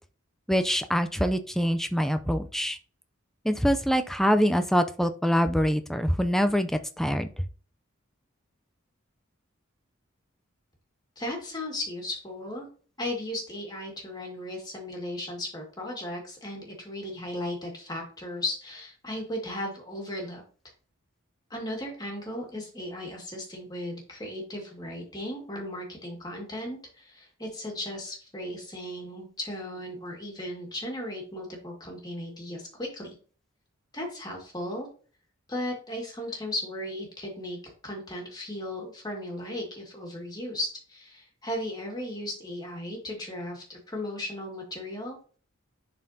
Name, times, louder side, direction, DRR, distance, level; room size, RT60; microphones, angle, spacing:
voice 1, 0.5-2.8 3.4-7.3, equal, ahead, 8 dB, 0.5 m, -24 dB
voice 2, 11.2-12.7 13.0-20.4 21.5-33.2 33.9-34.9 35.5-37.6 37.8-45.2, left 1 dB, 20° left, 0 dB, 2.0 m, -36 dB
11.0 x 4.3 x 2.8 m, 0.41 s
head